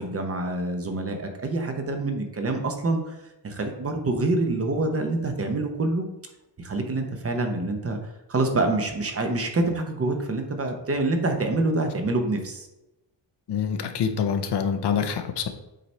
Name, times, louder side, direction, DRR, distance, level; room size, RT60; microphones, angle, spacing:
voice 1, 0.0-6.1 6.6-12.7, right 2 dB, 30° right, 4 dB, 0.7 m, -26 dB
voice 2, 13.5-15.5, left 7 dB, 60° left, 7 dB, 0.7 m, -26 dB
7.5 x 4.1 x 3.2 m, 0.95 s
wide cardioid pair, 160°, 45 cm